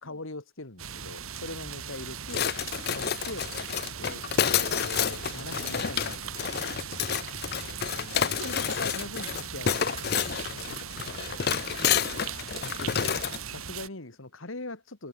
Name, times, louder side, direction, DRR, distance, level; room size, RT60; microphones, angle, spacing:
voice 1, 0.0-2.5 2.9-3.5 4.0-6.6 8.3-10.1 10.5-10.9 11.8-12.0 12.8-13.2 13.5-15.1, left 2 dB, 75° left, 2.4 m, -41 dB
sound 1, 0.8-13.9, right 7 dB, 85° right, 3.0 m, -39 dB
sound 2, 2.3-13.4, left 8 dB, 50° left, 0.6 m, -29 dB
voice 2, 7.6-8.8, right 1 dB, 70° right, 4.8 m, -55 dB
open air
head